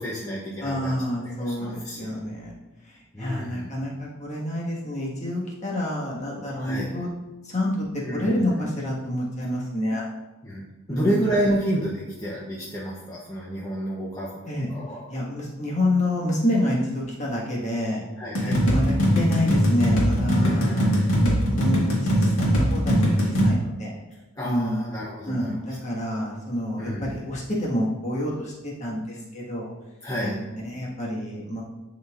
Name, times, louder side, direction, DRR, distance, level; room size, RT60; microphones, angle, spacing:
voice 1, 0.0-0.9 1.2-2.1 3.1-3.7 6.3-6.9 8.0-8.5 10.4-14.3 14.6-15.0 18.2-18.7 20.4-21.2 24.4-25.6 26.8-27.2 30.0-30.4, equal, 15° left, -6 dB, 0.8 m, -30 dB
voice 2, 0.6-2.5 3.2-7.1 7.5-7.8 8.1-10.0 10.9-11.2 14.5-14.7 15.1-18.0 18.4-20.9 21.2-23.9 24.4-24.8 25.3-29.7 30.2-30.4 30.6-31.6, left 1 dB, 35° left, -4 dB, 1.6 m, -28 dB
sound 1, 18.3-23.5, equal, 85° left, 1.7 m, -21 dB
10.5 x 4.1 x 2.5 m, 1.1 s
head